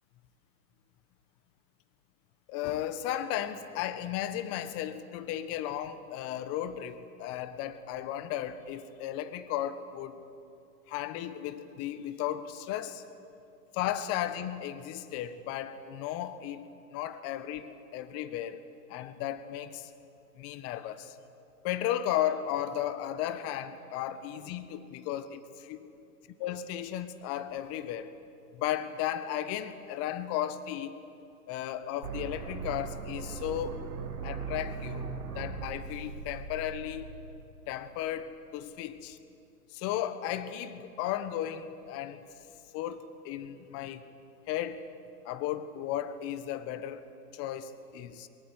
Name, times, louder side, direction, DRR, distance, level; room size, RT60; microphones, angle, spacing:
voice 1, 2.5-10.2 10.9-13.0 13.7-18.6 18.9-19.9 20.4-21.1 21.6-25.8 26.4-28.1 28.5-31.0 31.5-33.8 34.2-35.1 35.3-37.1 37.7-39.2 39.7-42.2 42.7-44.0 44.5-44.8 45.2-47.0 47.3-48.3, left 11 dB, 30° left, 12 dB, 1.3 m, -35 dB
sound 1, 32.0-38.0, right 5 dB, 65° right, 6.4 m, -39 dB
22.5 x 22.5 x 8.2 m, 2.6 s
hypercardioid pair, 125°, 48 cm